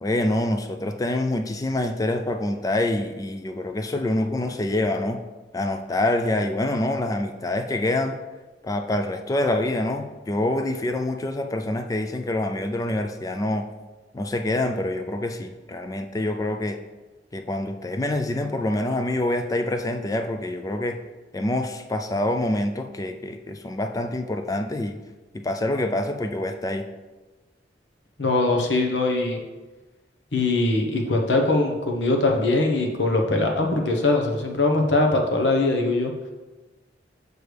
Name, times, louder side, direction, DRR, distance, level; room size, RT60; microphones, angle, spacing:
voice 1, 0.0-5.2 5.5-8.2 8.6-13.7 14.1-16.8 17.3-21.0 21.3-25.0 25.3-26.9, left 1 dB, 20° left, 6 dB, 0.4 m, -26 dB
voice 2, 28.2-29.4 30.3-36.1, left 2 dB, 90° left, 2 dB, 1.1 m, -22 dB
6.7 x 6.3 x 3.4 m, 1.2 s
head